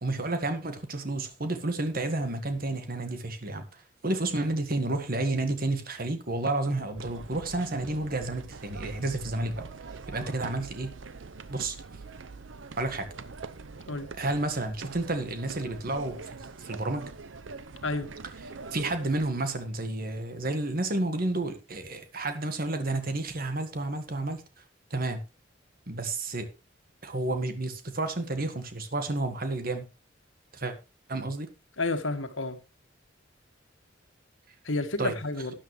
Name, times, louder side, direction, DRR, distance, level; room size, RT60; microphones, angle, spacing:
voice 1, 0.0-9.6 10.1-10.9 11.5-11.8 12.8-13.1 14.1-17.1 18.4-24.6 24.9-25.2 25.9-26.5 27.0-29.8 30.5-30.7 31.1-31.5 35.0-35.2, right 2 dB, 50° right, 1.7 m, -31 dB
sound 1, 7.0-19.3, right 4 dB, 80° right, 0.7 m, -43 dB
voice 2, 31.8-32.6 34.6-35.5, left 2 dB, 90° left, 1.6 m, -30 dB
12.5 x 10.0 x 3.2 m
head